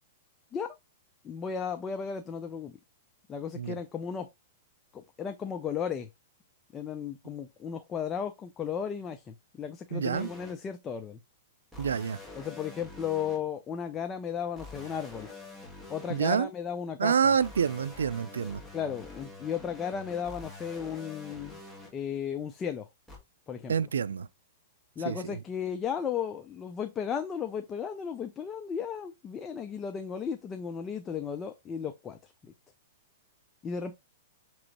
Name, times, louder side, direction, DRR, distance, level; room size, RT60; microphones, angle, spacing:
voice 1, 1.2-2.7 3.3-4.3 4.9-6.1 6.7-11.2 12.4-15.3 15.9-17.3 18.7-21.6 21.9-22.9 23.5-23.7 25.0-32.3 33.6-33.9, left 7 dB, 20° left, 0.4 m, -35 dB
voice 2, 9.9-10.3 11.8-12.2 16.1-16.5 17.0-18.6 23.7-24.3 25.1-25.4, right 7 dB, 90° right, 0.3 m, -27 dB
sound 1, 10.1-10.5 11.7-13.4 14.6-16.2 17.4-21.9 23.1-23.2, left 2 dB, 5° left, 1.5 m, -46 dB
6.1 x 3.0 x 2.9 m
hypercardioid pair, 135°, 0 cm